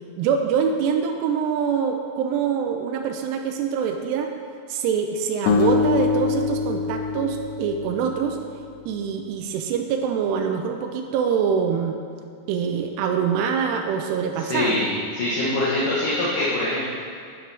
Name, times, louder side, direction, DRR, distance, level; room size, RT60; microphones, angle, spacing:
voice 1, 0.2-4.3 4.7-8.4 8.9-12.0 12.5-14.8, right 7 dB, 90° right, 4 dB, 2.7 m, -24 dB
sound 1, 5.5-8.6, left 5 dB, 85° left, 2.8 m, -24 dB
voice 2, 14.4-14.9 15.1-16.9, left 2 dB, 65° left, -9 dB, 2.6 m, -23 dB
11.0 x 6.0 x 3.4 m, 2.3 s
omnidirectional pair, 4.7 m